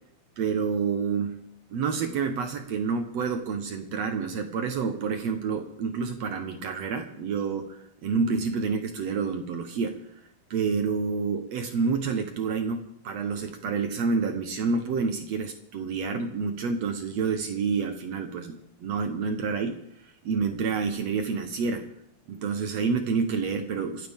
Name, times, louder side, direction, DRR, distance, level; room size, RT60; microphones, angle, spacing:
voice 1, 0.4-1.4 1.7-10.0 10.5-12.8 13.0-19.8 20.2-21.8 22.3-24.1, right 5 dB, 70° right, 6 dB, 1.6 m, -28 dB
27.0 x 13.5 x 3.7 m, 0.68 s
omnidirectional pair, 4.5 m